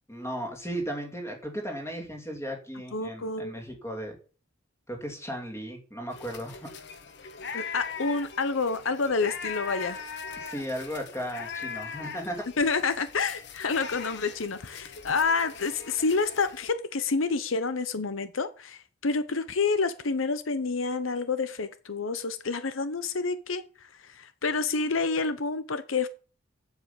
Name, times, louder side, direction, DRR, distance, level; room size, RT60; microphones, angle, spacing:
voice 1, 0.1-4.2 4.9-6.7 10.4-12.4, equal, 15° left, 2.8 m, -36 dB
voice 2, 2.9-3.5 7.5-10.0 12.6-26.1, left 4 dB, 80° left, 0.9 m, -28 dB
sound 1, 6.1-16.7, left 5 dB, 60° left, 1.4 m, -40 dB
8.1 x 7.5 x 7.4 m
head